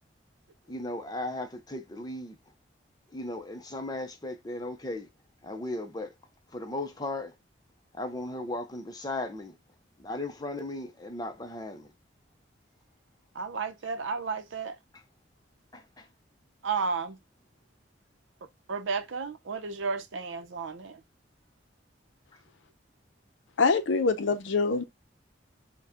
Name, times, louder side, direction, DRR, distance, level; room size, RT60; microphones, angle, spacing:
voice 1, 0.7-2.4 3.1-5.1 5.4-6.1 6.5-7.3 7.9-9.6 10.0-11.9 15.7-16.1, left 2 dB, 20° left, 0.6 m, -36 dB
voice 2, 13.3-14.8 16.6-17.2 18.7-21.0, right 5 dB, 80° right, 0.6 m, -32 dB
voice 3, 23.6-24.8, left 4 dB, 75° left, 0.6 m, -24 dB
4.2 x 2.2 x 3.6 m
head